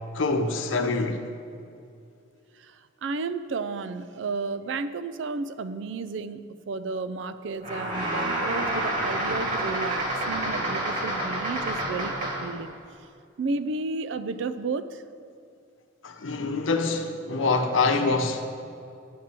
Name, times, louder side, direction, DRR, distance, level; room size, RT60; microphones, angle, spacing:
voice 1, 0.1-1.2 16.0-18.5, left 3 dB, 85° left, 0.8 m, -25 dB
voice 2, 2.6-12.8 13.4-15.0, right 3 dB, 65° right, 0.4 m, -32 dB
sound 1, 7.6-12.6, right 1 dB, 40° right, 1.9 m, -29 dB
10.5 x 4.3 x 7.5 m
head